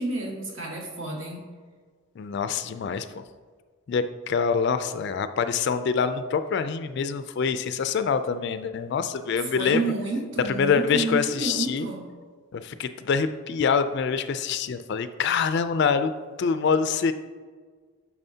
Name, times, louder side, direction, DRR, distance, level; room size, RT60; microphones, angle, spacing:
voice 1, 0.0-1.4 9.3-12.0, right 3 dB, 60° right, -1 dB, 1.5 m, -30 dB
voice 2, 2.2-3.2 3.9-9.8 10.5-11.9 12.5-16.1 16.4-17.1, left 6 dB, 50° left, 10 dB, 0.3 m, -25 dB
8.9 x 6.0 x 2.7 m, 1.5 s
head